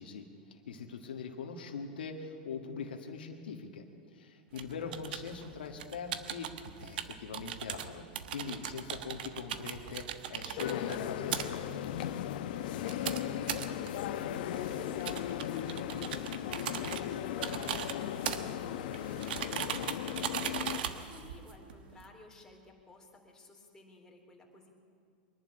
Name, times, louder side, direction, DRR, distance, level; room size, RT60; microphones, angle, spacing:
voice 1, 0.0-3.8 4.1-6.5 6.8-11.9, left 5 dB, 85° left, 4 dB, 1.9 m, -42 dB
voice 2, 4.5-5.0 12.7-24.8, left 2 dB, 10° left, 0 dB, 3.6 m, -55 dB
sound 1, 4.5-22.1, right 9 dB, 70° right, 1.3 m, -40 dB
sound 2, 10.6-20.8, left 11 dB, 65° left, 1.0 m, -37 dB
23.5 x 11.0 x 9.9 m, 2.3 s
hypercardioid pair, 120°, 5 cm